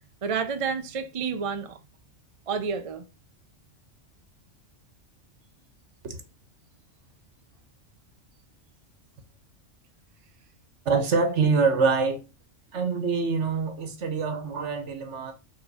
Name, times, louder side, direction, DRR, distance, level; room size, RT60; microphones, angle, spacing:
voice 1, 0.2-1.8 2.5-3.0, right 6 dB, 35° right, 0.5 m, -29 dB
voice 2, 10.8-12.2 12.7-15.3, right 4 dB, 65° right, 1.3 m, -25 dB
5.1 x 3.9 x 4.8 m
omnidirectional pair, 1.3 m